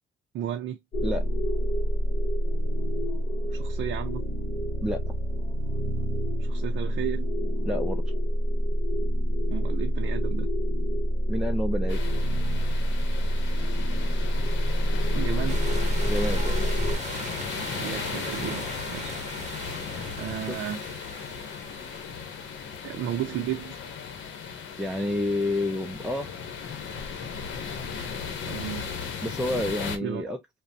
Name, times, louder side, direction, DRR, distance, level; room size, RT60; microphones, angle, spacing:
voice 1, 0.3-0.8 3.5-4.2 6.4-7.3 9.4-10.5 15.1-15.7 17.8-19.2 20.2-20.8 22.8-23.8 28.4-28.9 30.0-30.2, right 11 dB, 80° right, 0.5 m, -33 dB
sound 1, 0.9-17.0, equal, 55° left, 1.1 m, -26 dB
voice 2, 4.8-5.1 7.6-8.1 11.3-12.0 16.1-16.7 20.5-20.6 24.8-26.3 29.2-30.4, left 1 dB, 5° right, 0.4 m, -29 dB
sound 2, 11.9-30.0, left 6 dB, 75° left, 0.8 m, -36 dB
sound 3, 15.5-22.7, right 5 dB, 35° right, 0.8 m, -41 dB
3.3 x 2.1 x 2.6 m
cardioid pair, 90°, 20 cm